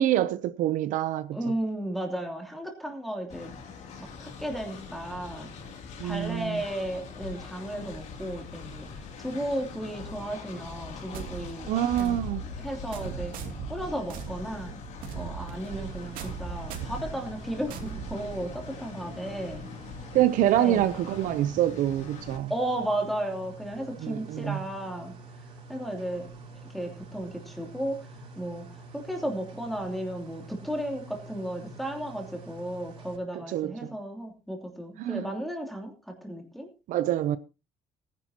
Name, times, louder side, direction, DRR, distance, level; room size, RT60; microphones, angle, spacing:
voice 1, 0.0-1.4 6.0-6.6 11.7-12.5 20.1-22.5 24.0-24.6 33.3-33.9 35.0-35.3 36.9-37.4, right 12 dB, 70° right, 0.7 m, -26 dB
voice 2, 1.3-3.5 4.0-5.5 6.0-12.2 12.6-13.3 13.7-14.8 15.1-19.7 20.6-21.0 22.5-25.1 25.7-26.3 26.7-28.1 28.4-28.7 28.9-36.7, right 1 dB, ahead, 2.9 m, -34 dB
Train, 3.3-22.4, left 5 dB, 55° left, 2.8 m, -43 dB
sound 1, 11.1-18.8, right 8 dB, 85° right, 2.7 m, -39 dB
sound 2, 15.7-33.2, right 3 dB, 40° right, 5.3 m, -47 dB
19.0 x 10.5 x 2.9 m
cardioid pair, 165°, 14 cm